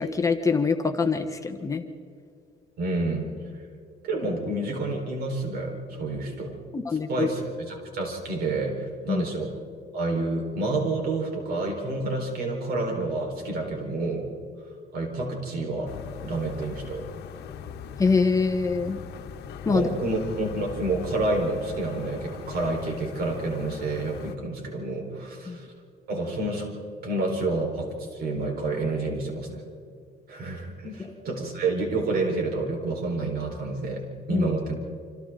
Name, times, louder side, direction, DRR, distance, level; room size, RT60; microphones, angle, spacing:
voice 1, 0.0-1.8 6.7-7.3 9.1-9.2 18.0-19.0 19.6-19.9 25.5-25.6 31.0-31.1 34.3-34.5, left 4 dB, 20° left, 6 dB, 1.1 m, -24 dB
voice 2, 2.8-3.3 3.5-3.6 4.0-6.6 7.1-9.5 9.9-14.3 14.9-15.9 16.2-17.0 19.7-25.7 26.1-26.7 27.0-29.6 30.3-34.0 34.3-34.7, right 2 dB, 65° right, 1 dB, 4.6 m, -29 dB
sound 1, 15.9-24.4, left 8 dB, 80° left, 1.2 m, -40 dB
28.0 x 25.5 x 3.9 m, 2.3 s
cardioid pair, 150°, 17 cm